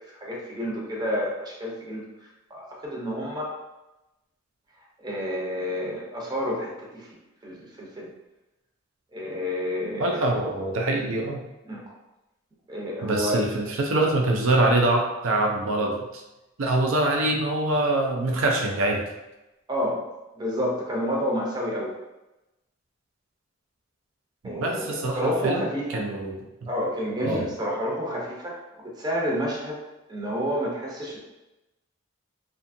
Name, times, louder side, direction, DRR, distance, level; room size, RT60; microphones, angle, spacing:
voice 1, 0.0-2.0 2.5-3.5 5.0-7.1 7.4-8.1 9.1-10.2 11.6-11.9 12.7-13.5 19.7-20.0 20.3-21.9 24.4-26.1 26.7-29.8 30.1-31.2, equal, 20° right, -3 dB, 0.5 m, -29 dB
voice 2, 10.0-11.4 13.0-16.0 16.6-19.0 24.4-25.6 25.9-26.7 27.2-27.4, right 2 dB, 85° right, 1 dB, 0.5 m, -24 dB
2.6 x 2.4 x 2.6 m, 0.99 s
head